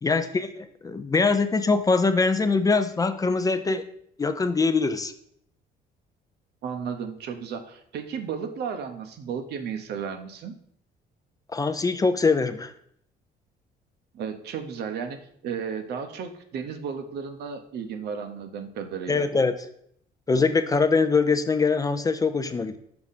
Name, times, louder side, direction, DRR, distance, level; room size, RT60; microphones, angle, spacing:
voice 1, 0.0-3.8 4.2-5.1 11.5-12.7 19.1-19.5 20.3-22.8, left 4 dB, 20° left, 9 dB, 0.4 m, -23 dB
voice 2, 6.6-10.5 14.1-15.2 15.4-19.3, right 6 dB, 70° right, 7 dB, 0.8 m, -34 dB
5.7 x 4.8 x 4.1 m, 0.68 s
cardioid pair, 110°, 18 cm